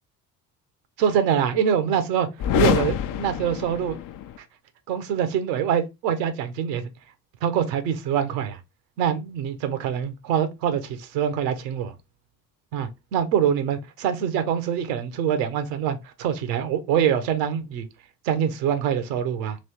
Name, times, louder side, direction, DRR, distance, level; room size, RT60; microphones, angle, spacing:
voice 1, 1.0-2.3 2.5-4.0 4.9-6.9 7.4-8.6 9.0-11.9 12.7-17.9 18.2-19.6, right 8 dB, 75° right, 0.9 m, -24 dB
sound 1, 2.4-4.4, left 10 dB, 40° left, 0.5 m, -25 dB
3.2 x 3.0 x 4.2 m
hypercardioid pair, 55°, 49 cm